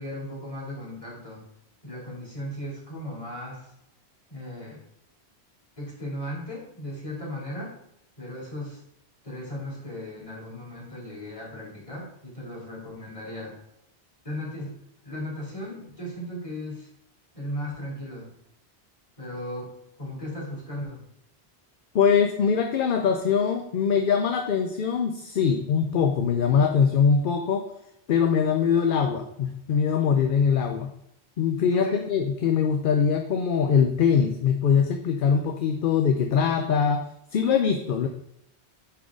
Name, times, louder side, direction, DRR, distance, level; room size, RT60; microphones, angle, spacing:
voice 1, 0.0-1.4 1.8-3.7 4.3-4.8 5.8-7.7 8.2-8.8 9.2-13.5 14.2-14.7 15.0-16.9 17.3-18.3 19.2-19.7 20.0-21.0 31.7-32.1, left 1 dB, 30° left, -5 dB, 3.0 m, -36 dB
voice 2, 21.9-27.7 28.1-30.9 31.4-37.0 37.3-38.1, left 6 dB, 60° left, 5 dB, 0.7 m, -22 dB
10.0 x 3.9 x 3.6 m, 0.77 s
omnidirectional pair, 1.1 m